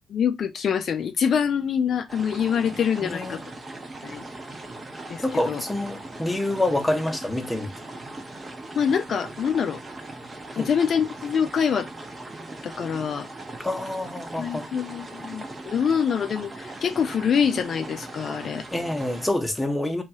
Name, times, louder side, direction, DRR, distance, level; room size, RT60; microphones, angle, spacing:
voice 1, 0.1-3.4 4.0-4.2 5.1-5.6 8.8-9.8 10.6-11.9 12.6-13.3 14.4-18.7, left 7 dB, 55° left, 0.4 m, -25 dB
sound 1, 2.1-19.3, right 2 dB, 25° right, 0.6 m, -39 dB
voice 2, 3.0-3.4 5.2-7.7 10.5-10.7 13.6-14.7 18.7-20.0, left 1 dB, 10° left, 0.8 m, -27 dB
3.0 x 2.3 x 2.7 m
cardioid pair, 90°, 0 cm